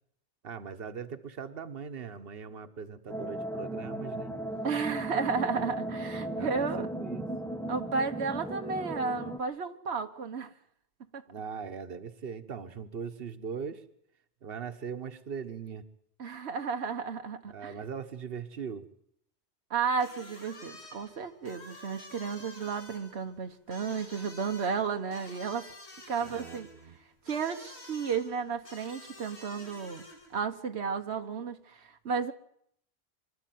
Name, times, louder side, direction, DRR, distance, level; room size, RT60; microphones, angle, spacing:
voice 1, 0.4-4.4 6.3-7.3 11.3-13.8 14.4-15.8 17.5-18.9 26.2-27.0, right 6 dB, 65° right, 9 dB, 1.4 m, -40 dB
sound 1, 3.1-9.4, right 1 dB, 5° left, 0.8 m, -36 dB
voice 2, 4.6-6.9 7.7-10.5 11.1-11.2 16.2-17.7 19.7-25.7 26.1-26.7 27.3-30.0 30.3-32.3, right 5 dB, 90° right, 6 dB, 1.3 m, -33 dB
sound 2, 20.0-30.4, left 2 dB, 90° left, 3.0 m, -50 dB
25.0 x 12.5 x 9.3 m, 0.73 s
omnidirectional pair, 1.1 m